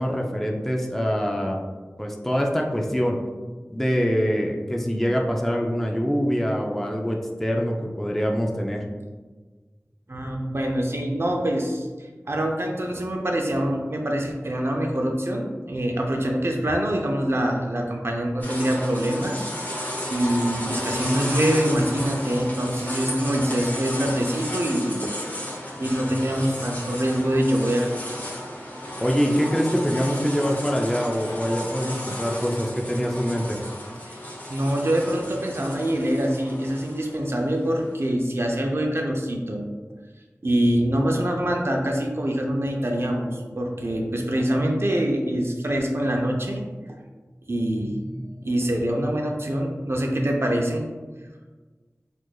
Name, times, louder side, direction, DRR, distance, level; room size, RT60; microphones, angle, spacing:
voice 1, 0.0-1.6 2.0-3.2 3.7-8.8 29.0-33.6, equal, 5° left, 0 dB, 0.4 m, -24 dB
voice 2, 10.1-11.9 12.3-19.5 20.1-25.1 25.8-27.9 34.1-34.2 34.5-39.7 40.4-47.0 47.5-50.8, right 1 dB, 50° right, 1 dB, 0.5 m, -25 dB
sound 1, 18.4-37.9, equal, 30° left, 0.8 m, -33 dB
4.4 x 2.5 x 2.3 m, 1.4 s
wide cardioid pair, 50°, 5 cm